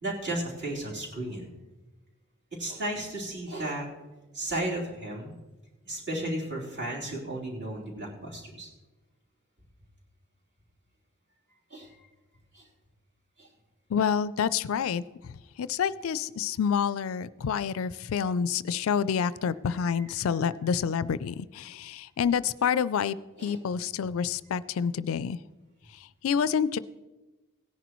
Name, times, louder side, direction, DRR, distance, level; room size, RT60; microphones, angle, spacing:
voice 1, 0.0-1.5 2.6-3.9 4.3-5.3 5.8-8.7 11.7-11.9 12.5-12.6 13.4-13.5 23.4-23.6, right 1 dB, 55° right, -5 dB, 3.4 m, -34 dB
voice 2, 13.9-25.4 25.9-26.8, left 7 dB, 70° left, 17 dB, 0.4 m, -28 dB
17.5 x 10.0 x 3.1 m, 1.1 s
head